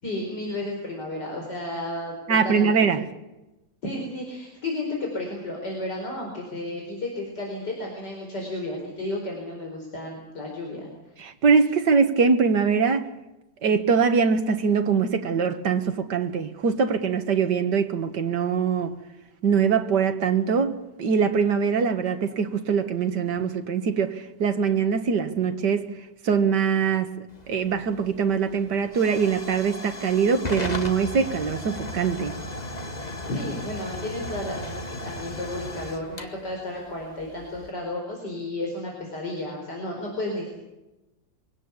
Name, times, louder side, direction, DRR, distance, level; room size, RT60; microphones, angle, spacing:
voice 1, 0.0-2.2 2.4-2.9 3.8-10.9 33.3-40.5, left 1 dB, 60° left, 0 dB, 5.3 m, -32 dB
voice 2, 2.3-3.1 11.2-13.1 13.6-18.9 19.4-25.9 26.2-27.1 27.5-32.3, right 6 dB, 60° right, 7 dB, 2.2 m, -23 dB
Hiss / Fire / Tick, 27.3-37.7, left 1 dB, 20° left, 2.0 m, -36 dB
24.5 x 18.0 x 8.3 m, 1.0 s
omnidirectional pair, 2.1 m